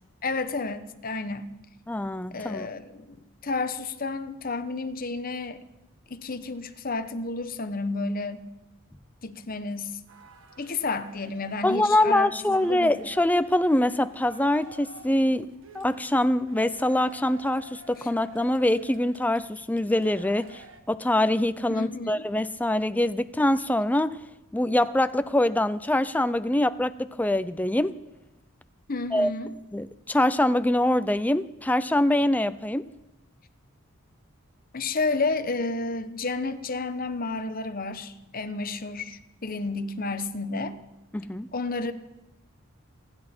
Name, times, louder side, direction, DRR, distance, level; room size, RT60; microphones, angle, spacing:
voice 1, 0.2-1.5 2.3-3.2 3.4-5.6 6.1-8.4 9.2-10.0 10.6-13.0 21.7-22.2 28.9-29.5 34.7-40.8 41.5-41.9, left 3 dB, 40° left, 1.0 m, -31 dB
voice 2, 1.9-2.7 11.6-15.5 15.7-24.2 24.5-28.0 29.1-29.3 29.7-32.9 41.1-41.5, left 1 dB, 5° left, 0.4 m, -24 dB
sound 1, 10.1-20.8, right 2 dB, 60° right, 1.7 m, -50 dB
28.0 x 10.5 x 4.4 m
head